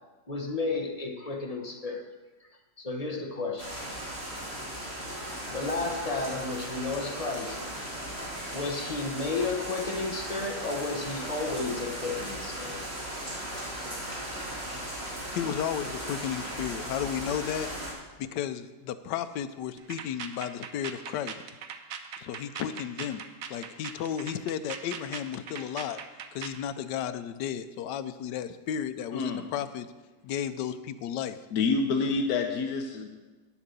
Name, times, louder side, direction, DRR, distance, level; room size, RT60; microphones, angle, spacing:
voice 1, 0.3-2.1 2.8-4.0 4.8-7.8 8.5-12.8, left 3 dB, 25° left, 3 dB, 1.0 m, -33 dB
sound 1, 3.6-17.9, equal, 35° right, 2.7 m, -37 dB
voice 2, 15.3-17.7 18.2-21.4 22.2-23.2 23.5-26.0 26.3-29.9 30.2-31.4, left 9 dB, 85° left, 11 dB, 1.3 m, -33 dB
sound 2, 19.8-26.6, right 7 dB, 60° right, 1.1 m, -40 dB
voice 3, 29.1-29.4 31.5-33.1, left 4 dB, 65° left, 3 dB, 1.3 m, -27 dB
9.5 x 7.5 x 6.8 m, 1.2 s
omnidirectional pair, 1.8 m